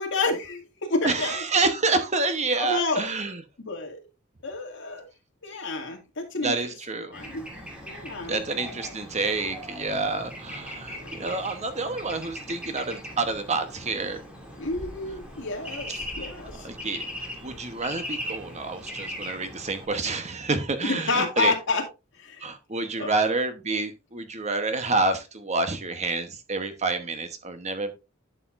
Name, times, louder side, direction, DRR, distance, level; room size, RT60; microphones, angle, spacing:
voice 1, 0.0-1.4 2.5-3.1 3.6-4.0 4.4-5.0 5.4-6.7 7.1-7.5 7.8-8.4 11.0-11.1 14.6-16.7 20.8-21.8 22.2-22.5 23.0-23.1, left 3 dB, 65° left, 2.3 m, -29 dB
voice 2, 1.0-3.4 6.4-7.1 8.2-14.2 16.6-21.5 22.4-27.9, right 3 dB, 35° right, 1.1 m, -28 dB
Bird / Traffic noise roadway noise, 7.1-19.9, equal, 5° right, 2.5 m, -39 dB
11.5 x 6.8 x 2.6 m
head